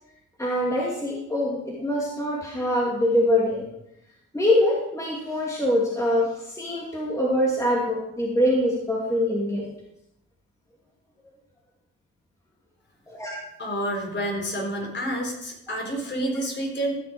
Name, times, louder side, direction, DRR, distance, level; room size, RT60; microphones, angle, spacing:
voice 1, 0.4-3.6 4.3-9.7 13.1-13.4, left 1 dB, 10° left, -4 dB, 2.5 m, -24 dB
voice 2, 13.6-17.0, right 1 dB, 35° left, 1 dB, 4.0 m, -29 dB
15.0 x 6.1 x 5.0 m, 0.81 s
cardioid pair, 90°, 30 cm